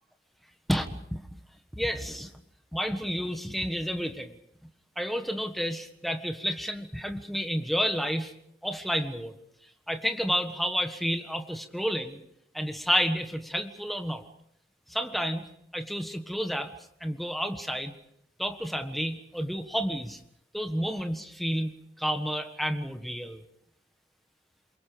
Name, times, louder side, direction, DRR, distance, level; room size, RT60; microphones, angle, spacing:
voice 1, 0.7-1.4 1.8-2.3 2.7-4.3 5.0-8.3 8.6-9.3 9.9-12.2 12.5-14.2 14.9-15.4 15.7-16.7 17.0-17.9 18.4-20.2 20.5-21.7 22.0-23.4, equal, ahead, 6 dB, 1.5 m, -30 dB
28.0 x 23.0 x 5.2 m, 0.74 s
head